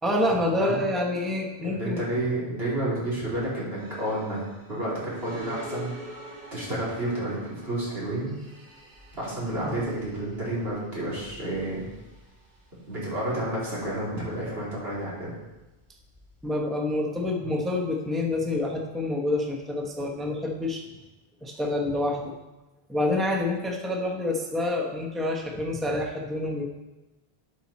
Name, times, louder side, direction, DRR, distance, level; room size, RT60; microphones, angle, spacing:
voice 1, 0.0-2.0 9.6-9.8 16.4-20.8 21.4-22.3 22.9-26.7, left 1 dB, ahead, 0 dB, 0.9 m, -27 dB
voice 2, 1.6-4.4 4.7-5.9 6.2-8.3 9.1-11.9 12.9-15.3, right 1 dB, 75° right, -7 dB, 3.5 m, -30 dB
sound 1, 3.8-16.5, equal, 45° right, 2.8 m, -47 dB
11.5 x 5.6 x 4.2 m, 1.1 s
omnidirectional pair, 1.0 m